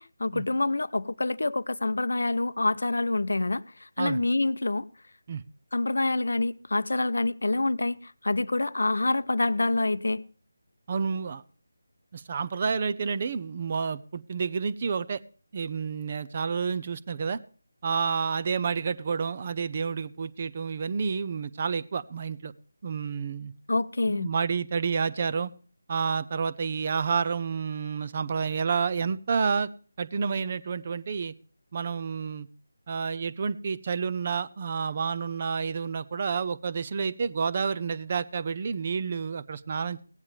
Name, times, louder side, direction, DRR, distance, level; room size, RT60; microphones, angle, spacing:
voice 1, 0.0-3.6 4.0-4.9 5.7-10.2 23.7-24.3, left 2 dB, 65° left, 16 dB, 0.6 m, -26 dB
voice 2, 10.9-11.4 12.1-15.2 15.5-17.4 17.8-22.5 22.8-23.5 24.1-25.5 25.9-29.7 30.0-31.3 31.7-32.5 32.9-40.0, right 5 dB, 35° right, 14 dB, 0.6 m, -29 dB
17.0 x 9.6 x 3.3 m, 0.40 s
figure-of-eight pair, 160°, 0 cm